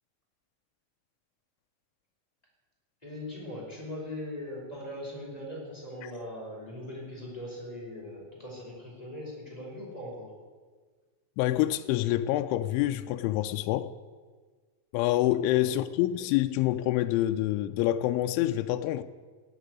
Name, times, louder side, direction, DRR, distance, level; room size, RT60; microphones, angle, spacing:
voice 1, 3.0-10.3 15.4-15.7, left 1 dB, 10° left, -5 dB, 5.4 m, -40 dB
voice 2, 11.4-13.9 14.9-19.0, left 14 dB, 80° left, 8 dB, 3.0 m, -27 dB
17.5 x 8.2 x 9.6 m, 1.5 s
omnidirectional pair, 5.6 m